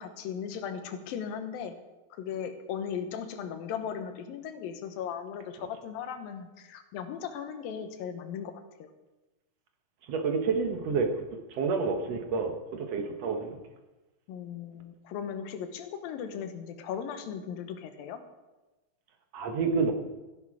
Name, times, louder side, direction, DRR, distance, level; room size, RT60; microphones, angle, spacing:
voice 1, 0.0-1.8 2.1-8.9 14.3-18.2, left 8 dB, 85° left, 8 dB, 2.8 m, -37 dB
voice 2, 10.1-11.3 11.5-13.6 19.3-19.9, right 4 dB, 60° right, 5 dB, 1.9 m, -29 dB
15.0 x 11.0 x 4.8 m, 1.1 s
omnidirectional pair, 4.0 m